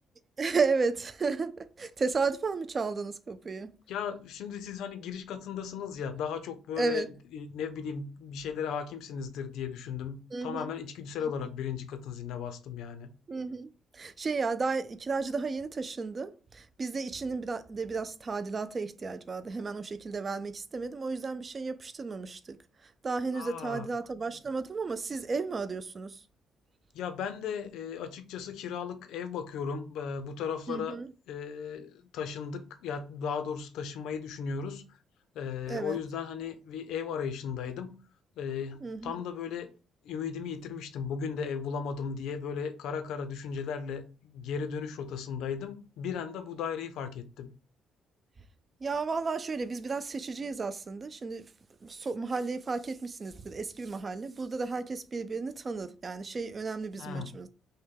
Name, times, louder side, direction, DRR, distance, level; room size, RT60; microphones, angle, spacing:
voice 1, 0.4-3.7 6.8-7.1 10.3-10.7 13.3-22.6 23.0-26.2 30.7-31.1 35.7-36.0 38.8-39.1 48.8-51.5 51.8-57.5, right 4 dB, 25° right, 0.3 m, -33 dB
voice 2, 3.9-7.0 7.3-13.1 23.3-23.9 26.9-31.0 31.3-34.8 35.3-38.0 38.4-39.7 40.0-47.5 57.0-57.3, left 6 dB, 80° left, 0.7 m, -36 dB
5.5 x 2.2 x 3.7 m
cardioid pair, 180°, 0 cm